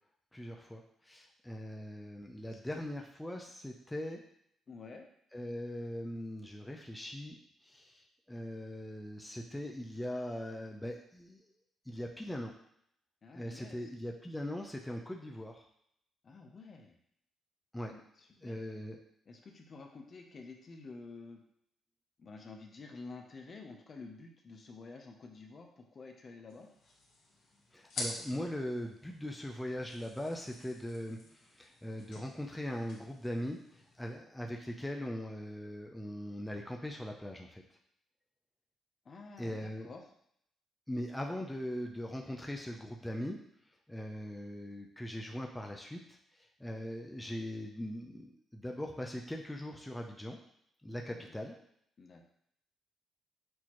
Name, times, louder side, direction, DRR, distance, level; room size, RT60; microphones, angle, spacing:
voice 1, 0.3-4.2 5.3-11.4 11.9-12.5 13.3-15.6 17.7-17.9 18.4-19.0 27.7-33.6 34.0-37.6 39.4-39.9 40.9-43.4 43.9-46.2 46.6-50.4 50.8-51.5, equal, 10° left, 1 dB, 0.5 m, -40 dB
voice 2, 2.5-2.8 4.7-5.1 13.2-13.8 16.2-17.0 17.8-18.6 19.3-21.4 22.2-26.7 39.0-40.1 51.1-51.3 52.0-52.2, left 3 dB, 45° left, 3 dB, 0.7 m, -50 dB
sound 1, 26.5-34.1, left 2 dB, 70° left, 1.3 m, -48 dB
6.2 x 2.8 x 3.0 m, 0.71 s
cardioid pair, 90°, 0 cm